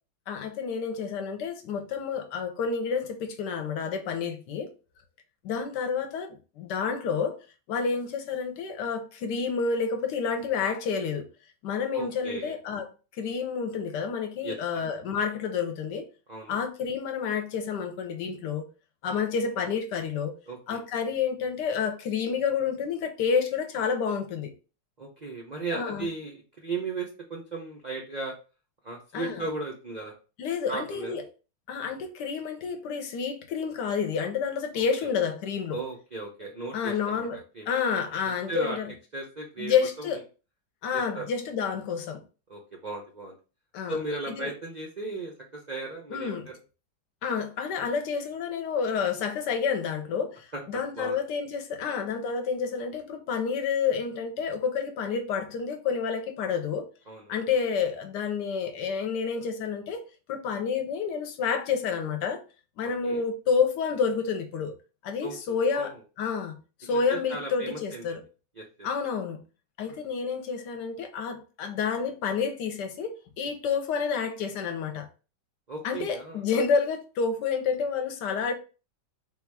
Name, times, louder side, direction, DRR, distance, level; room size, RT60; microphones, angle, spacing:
voice 1, 0.3-4.7 5.4-7.4 7.7-11.3 11.6-12.9 13.2-16.0 16.5-18.6 19.0-20.3 20.7-24.5 25.7-26.1 29.1-29.4 30.4-31.2 31.7-35.8 36.7-37.4 37.7-38.9 39.6-40.2 40.8-42.2 43.7-44.0 44.3-44.5 46.1-46.5 47.2-56.9 57.3-60.0 60.3-62.4 62.8-64.7 65.0-66.5 66.8-68.2 68.8-69.4 69.8-75.1 75.8-78.5, left 6 dB, 75° left, 1.3 m, -29 dB
voice 2, 11.9-12.6 14.4-14.6 16.3-16.6 20.5-20.8 25.0-28.3 28.8-30.1 30.7-31.2 34.7-34.8 35.7-37.3 37.5-37.7 38.5-38.8 39.1-40.2 40.9-41.3 42.5-43.4 43.9-46.5 50.5-51.2 57.1-57.4 62.8-63.2 65.2-65.9 66.8-68.2 68.6-68.7 75.7-76.4, right 3 dB, 75° right, 0.4 m, -36 dB
3.9 x 2.3 x 4.6 m
omnidirectional pair, 1.9 m